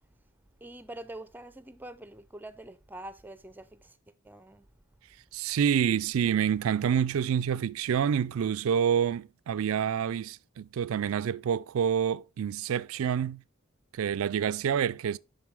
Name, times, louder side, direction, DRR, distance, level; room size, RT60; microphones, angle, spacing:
voice 1, 0.6-4.0 4.2-4.7, right 1 dB, 10° right, 0.5 m, -45 dB
voice 2, 5.3-13.4 13.9-15.2, right 8 dB, 70° right, 0.3 m, -27 dB
11.0 x 4.0 x 3.5 m
head